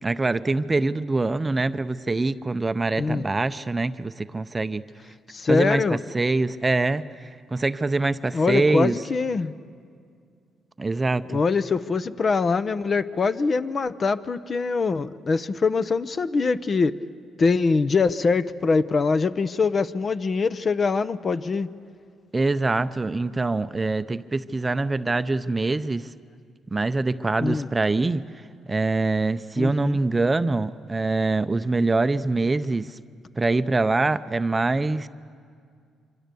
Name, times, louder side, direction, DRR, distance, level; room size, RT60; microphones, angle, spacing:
voice 1, 0.0-4.8 5.5-8.9 10.8-11.4 22.3-26.1 26.7-28.2 28.7-33.0 33.4-35.1, right 3 dB, 20° right, 12 dB, 0.6 m, -24 dB
voice 2, 3.0-3.3 5.3-6.0 8.3-9.5 11.3-16.9 17.4-21.7 27.4-27.7 29.6-30.0, left 4 dB, 40° left, 13 dB, 0.7 m, -23 dB
25.5 x 25.5 x 6.9 m, 2.2 s
cardioid pair, 90°, 0 cm